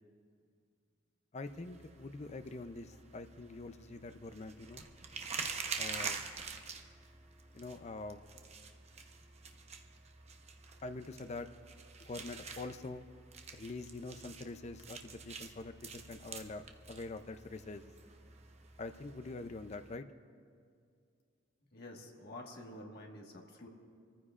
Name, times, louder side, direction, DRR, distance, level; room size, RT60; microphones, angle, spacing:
voice 1, 1.3-4.8 5.8-6.2 7.5-8.2 10.8-11.5 12.1-13.0 13.5-17.8 18.8-20.1, left 3 dB, 35° left, 9 dB, 0.5 m, -45 dB
sound 1, 1.5-19.9, right 5 dB, 35° right, 0.8 m, -47 dB
voice 2, 21.7-23.7, left 1 dB, 55° left, 0 dB, 1.6 m, -49 dB
26.0 x 14.5 x 2.5 m, 2.2 s
head